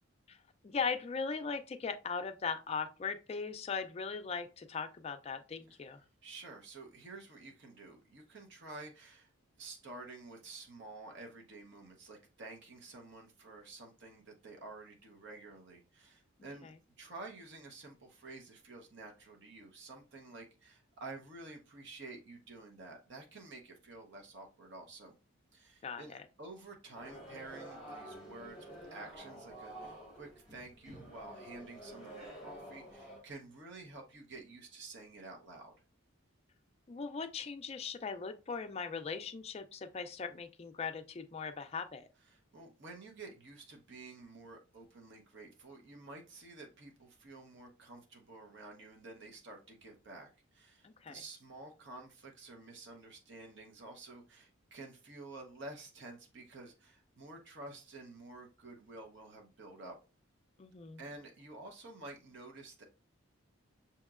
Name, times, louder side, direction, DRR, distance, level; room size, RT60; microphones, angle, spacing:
voice 1, 0.6-6.0 16.6-16.7 25.8-26.2 36.9-42.1 50.8-51.2 60.6-61.0, left 5 dB, 30° left, 0.3 m, -39 dB
voice 2, 6.2-9.3 9.6-16.7 17.0-25.1 25.5-35.7 42.3-59.9 61.0-62.8, right 2 dB, 55° right, 0.8 m, -50 dB
sound 1, 26.9-33.2, right 1 dB, 5° right, 1.2 m, -49 dB
6.3 x 2.9 x 2.4 m
head